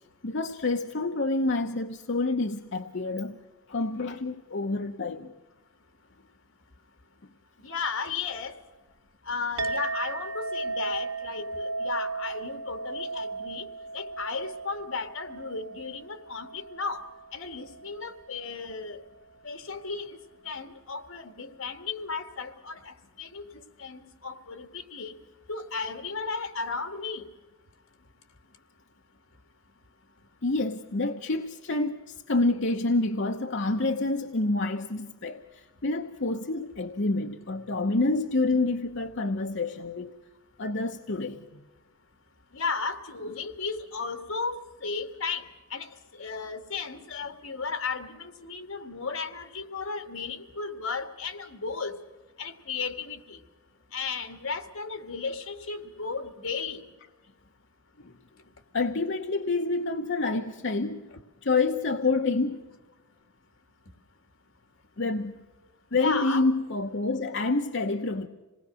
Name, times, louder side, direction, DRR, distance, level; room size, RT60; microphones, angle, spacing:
voice 1, 0.2-3.4 3.7-5.3 30.4-40.1 40.6-41.6 58.0-58.1 58.7-61.1 61.4-62.6 65.0-65.4 65.9-68.3, left 3 dB, 55° left, 0.9 m, -28 dB
voice 2, 7.6-8.6 9.3-13.7 13.9-17.0 17.3-19.0 19.4-20.2 20.4-25.1 25.5-27.3 42.5-52.0 52.4-53.4 53.9-56.8 65.9-66.5, left 4 dB, 70° left, 2.1 m, -35 dB
Chink clink, 9.6-18.3, right 3 dB, 65° right, 2.4 m, -36 dB
27.0 x 19.5 x 6.3 m
head